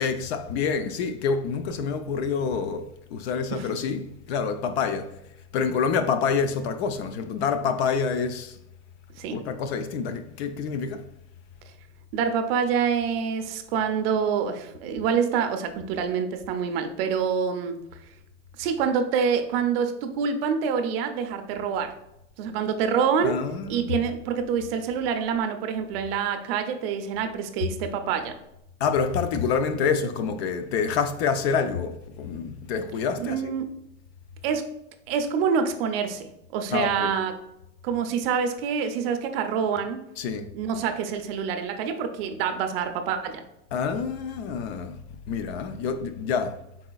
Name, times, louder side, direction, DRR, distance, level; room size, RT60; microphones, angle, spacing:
voice 1, 0.0-4.0 4.3-5.2 5.5-8.6 9.3-11.0 23.2-23.9 28.8-33.5 36.7-37.1 40.2-40.5 43.7-45.0 45.3-46.6, left 6 dB, 55° left, 0.4 m, -27 dB
voice 2, 12.1-17.8 18.6-21.9 22.4-23.4 23.7-28.4 33.2-33.7 34.4-34.7 35.1-37.3 37.8-40.0 40.5-43.4, right 6 dB, 50° right, 0.5 m, -26 dB
4.8 x 4.2 x 2.2 m
supercardioid pair, 165°, 39 cm